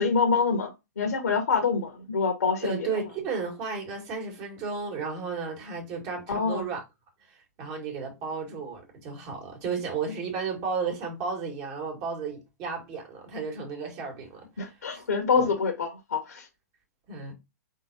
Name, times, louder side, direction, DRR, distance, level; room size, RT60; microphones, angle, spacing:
voice 1, 0.0-2.9 6.3-6.6 14.6-16.5, left 5 dB, 75° left, 1.1 m, -26 dB
voice 2, 2.6-6.8 7.3-15.0 15.4-15.5 17.1-17.3, right 5 dB, 40° right, 2.0 m, -34 dB
4.3 x 3.8 x 2.8 m
hypercardioid pair, 115°, 9 cm